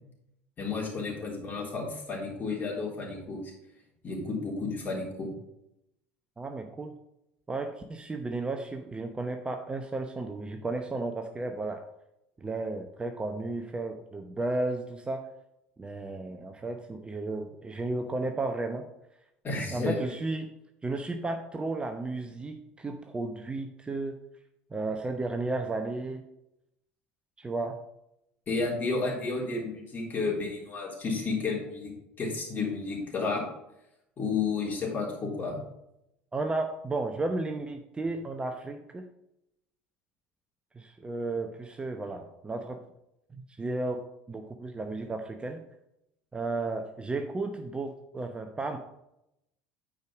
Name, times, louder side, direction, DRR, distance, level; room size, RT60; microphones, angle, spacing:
voice 1, 0.6-3.5 4.0-5.3 19.4-20.0 28.5-33.4 34.2-35.6, left 4 dB, 30° left, -2 dB, 3.6 m, -32 dB
voice 2, 6.4-6.9 7.5-11.8 12.4-15.3 15.8-18.9 19.7-20.5 20.8-24.2 24.7-26.2 27.4-27.8 36.3-39.0 40.7-42.8 43.5-45.6 46.3-48.8, right 2 dB, 15° right, 5 dB, 0.8 m, -33 dB
9.3 x 5.1 x 5.0 m, 0.83 s
figure-of-eight pair, 65°, 6 cm